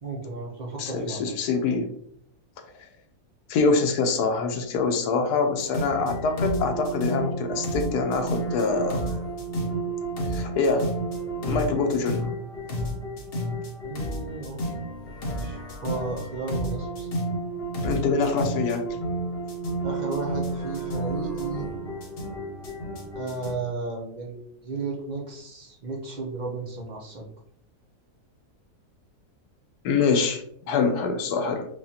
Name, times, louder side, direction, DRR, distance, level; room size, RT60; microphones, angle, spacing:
voice 1, 0.0-1.2 13.8-14.8 15.3-17.1 19.8-21.7 23.1-27.3, right 3 dB, 55° right, -1 dB, 0.5 m, -34 dB
voice 2, 0.8-1.9 3.5-9.1 10.3-10.9 11.4-12.3 17.8-18.8 29.8-31.7, left 4 dB, 90° left, 5 dB, 1.2 m, -25 dB
sound 1, 5.6-23.5, right 1 dB, 50° left, 0.8 m, -31 dB
4.8 x 2.4 x 2.7 m, 0.70 s
omnidirectional pair, 1.6 m